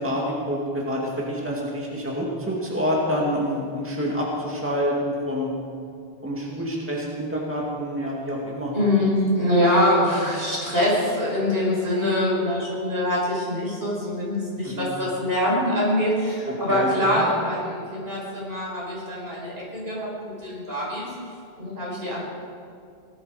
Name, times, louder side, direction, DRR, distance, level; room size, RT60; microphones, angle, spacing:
voice 1, 0.0-5.5 6.2-8.7 14.6-14.9 16.7-16.9 17.2-17.3, equal, 10° right, -4 dB, 2.2 m, -27 dB
voice 2, 8.7-20.1 20.4-21.1 21.6-22.2, left 1 dB, 70° right, -6 dB, 5.3 m, -24 dB
18.5 x 12.5 x 5.0 m, 2.3 s
omnidirectional pair, 1.0 m